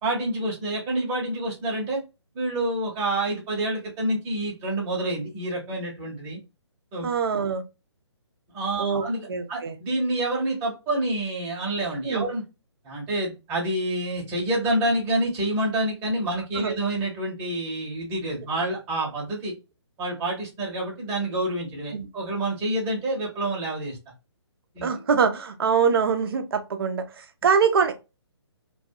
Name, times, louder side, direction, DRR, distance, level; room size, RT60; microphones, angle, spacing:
voice 1, 0.0-2.0 2.3-6.4 6.9-7.1 8.5-12.4 12.8-19.5 20.0-24.0 24.7-25.0, right 1 dB, 15° right, 0.9 m, -28 dB
voice 2, 7.0-7.6 8.8-9.8 12.0-12.3 16.5-16.7 21.9-22.1 24.8-27.9, right 6 dB, 55° right, 0.6 m, -24 dB
2.3 x 2.2 x 2.7 m
figure-of-eight pair, 140°, 15 cm